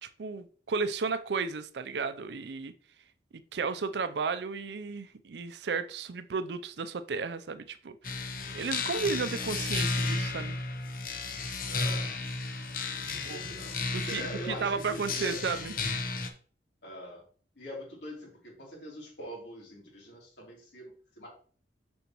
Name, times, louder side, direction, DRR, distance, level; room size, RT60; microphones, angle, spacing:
voice 1, 0.0-2.7 3.3-10.6 13.2-13.5 13.9-15.8, right 4 dB, 70° right, 0.5 m, -34 dB
sound 1, 8.0-16.3, left 3 dB, 50° left, 0.8 m, -33 dB
voice 2, 11.6-12.1 12.9-13.8 14.1-15.5 16.8-17.2 17.6-21.3, equal, 85° left, 3.1 m, -43 dB
6.8 x 6.2 x 3.0 m
head